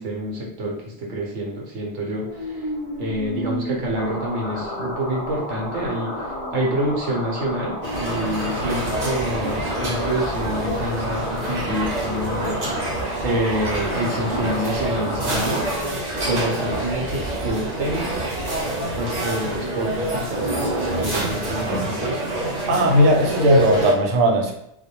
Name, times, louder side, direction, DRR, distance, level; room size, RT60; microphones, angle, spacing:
voice 1, 0.0-2.6 3.0-6.1 6.5-12.6 13.2-15.7 16.3-18.3 18.9-20.4 21.0-22.2, right 1 dB, 65° right, -2 dB, 0.9 m, -27 dB
sound 1, 2.2-18.8, equal, 35° left, 0.7 m, -38 dB
sound 2, 3.9-15.8, left 1 dB, 70° left, 0.8 m, -32 dB
sound 3, 7.8-23.9, right 1 dB, 45° right, 0.6 m, -27 dB
voice 2, 22.7-24.5, equal, 90° right, 2 dB, 1.0 m, -17 dB
2.3 x 2.0 x 2.8 m, 0.78 s
omnidirectional pair, 1.3 m